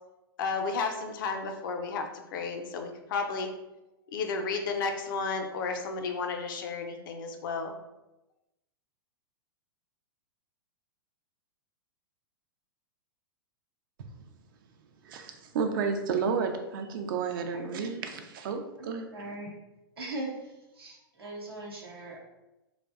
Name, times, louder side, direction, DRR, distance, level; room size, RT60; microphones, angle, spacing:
voice 1, 0.4-2.0 2.3-3.5 4.1-7.7, left 4 dB, 60° left, 5 dB, 0.4 m, -32 dB
voice 2, 15.0-19.1, right 5 dB, 60° right, 5 dB, 0.4 m, -31 dB
voice 3, 17.5-17.9 18.8-19.6 20.0-22.2, right 2 dB, 85° right, -3 dB, 0.8 m, -40 dB
2.6 x 2.1 x 2.3 m, 0.98 s
hypercardioid pair, 110°, 12 cm